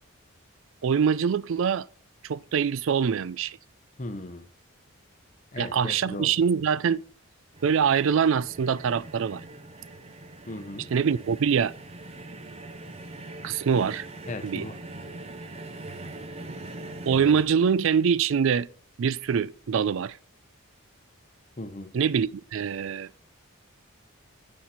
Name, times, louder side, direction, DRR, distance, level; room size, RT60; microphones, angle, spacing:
voice 1, 0.8-1.9 2.2-3.6 5.6-7.0 7.6-9.4 10.9-11.7 13.4-14.1 14.4-14.7 17.1-18.7 19.0-20.2 21.9-23.1, right 7 dB, 60° right, 0.3 m, -24 dB
voice 2, 4.0-4.5 5.5-6.3 10.5-10.9 14.3-14.8 21.6-21.9, left 2 dB, 35° left, 0.7 m, -37 dB
sound 1, 7.5-17.4, right 2 dB, 25° right, 0.7 m, -42 dB
7.5 x 6.9 x 4.1 m
head